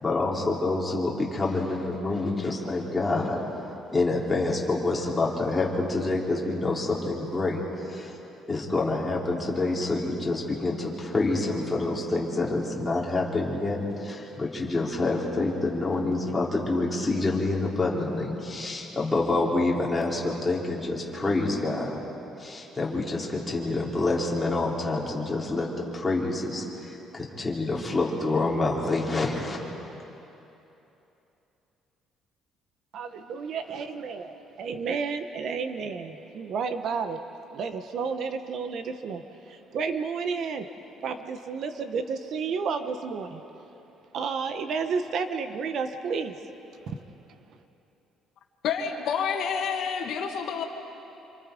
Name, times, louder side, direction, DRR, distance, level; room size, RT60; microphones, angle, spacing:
voice 1, 0.0-3.4 3.9-7.6 7.9-8.1 8.5-22.0 22.4-25.7 25.9-29.6, left 2 dB, 15° left, -4 dB, 3.7 m, -27 dB
voice 2, 32.9-37.2 37.5-40.7 41.0-43.4 44.1-46.4 46.9-47.0, right 5 dB, 55° right, 8 dB, 1.2 m, -31 dB
voice 3, 48.6-50.6, left 6 dB, 65° left, 3 dB, 2.1 m, -28 dB
27.5 x 26.5 x 5.3 m, 3.0 s
cardioid pair, 140°, 0 cm